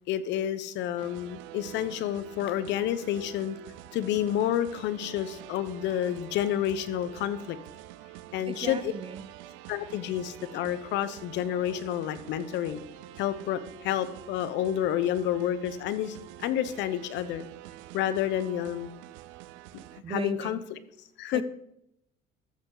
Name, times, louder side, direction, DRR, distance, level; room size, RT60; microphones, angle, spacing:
voice 1, 0.1-3.6 3.9-7.6 8.3-8.9 9.7-12.8 13.2-16.2 16.4-17.4 17.9-18.9 20.1-20.6 21.2-21.4, left 11 dB, 75° left, 14 dB, 0.9 m, -29 dB
sound 1, 1.0-20.0, right 14 dB, 90° right, 0.5 m, -47 dB
voice 2, 8.5-9.3 20.0-20.6 21.3-21.4, right 7 dB, 30° right, 15 dB, 0.6 m, -37 dB
13.0 x 8.2 x 3.9 m, 0.79 s
cardioid pair, 105°, 19 cm